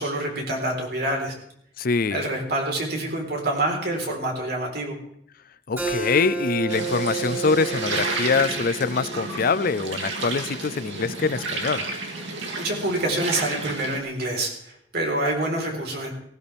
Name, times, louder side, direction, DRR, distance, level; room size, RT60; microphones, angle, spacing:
voice 1, 0.0-1.4 2.1-5.0 12.3-16.1, right 1 dB, 60° right, 0 dB, 4.1 m, -27 dB
voice 2, 1.8-2.2 5.7-11.8, left 4 dB, 50° left, 15 dB, 0.5 m, -24 dB
Keyboard (musical), 5.8-11.0, right 3 dB, 15° right, 6.4 m, -32 dB
sound 1, 6.7-14.0, right 3 dB, 75° right, 2.5 m, -31 dB
18.0 x 17.0 x 3.5 m, 0.70 s
head